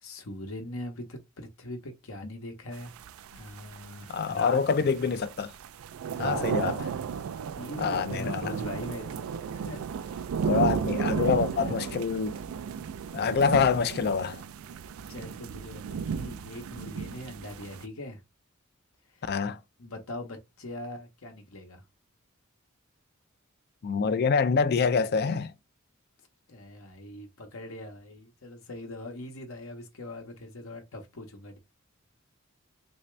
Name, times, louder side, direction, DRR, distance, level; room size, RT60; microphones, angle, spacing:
voice 1, 0.0-2.9 3.3-4.6 6.1-6.5 7.5-10.2 10.6-12.2 13.0-13.1 15.1-18.2 19.8-21.8 26.5-31.6, left 1 dB, 75° left, 0.9 m, -41 dB
sound 1, 2.7-17.8, right 6 dB, 75° right, 0.3 m, -34 dB
voice 2, 4.1-5.5 6.2-6.7 7.8-8.6 10.5-12.4 13.1-14.4 19.3-19.6 23.8-25.5, left 5 dB, 50° left, 0.4 m, -26 dB
3.3 x 2.7 x 3.1 m
head